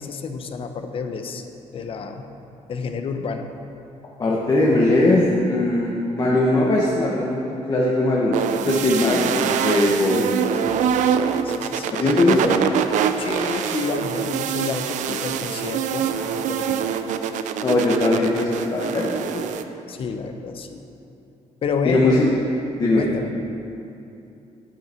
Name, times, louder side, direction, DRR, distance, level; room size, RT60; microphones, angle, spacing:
voice 1, 0.0-1.5 1.7-2.3 2.7-3.5 10.6-12.4 13.2-16.9 19.9-20.8 21.6-22.2 23.0-23.4, left 5 dB, 50° left, 6 dB, 0.7 m, -30 dB
voice 2, 4.2-10.2 11.9-12.5 17.6-19.5 21.8-22.1 22.8-23.1, left 2 dB, 30° left, -4 dB, 1.1 m, -20 dB
sound 1, 8.3-19.6, right 8 dB, 85° right, 0.5 m, -24 dB
10.0 x 8.8 x 4.4 m, 2.7 s
cardioid pair, 140°, 12 cm